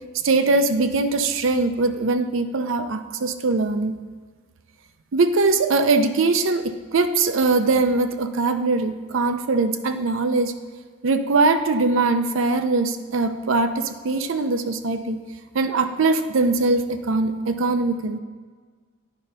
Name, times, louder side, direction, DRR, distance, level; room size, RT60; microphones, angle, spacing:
voice 1, 0.2-4.0 5.1-10.5 11.0-15.2 15.5-18.2, right 3 dB, 70° right, 8 dB, 0.5 m, -21 dB
9.1 x 3.8 x 5.5 m, 1.5 s
head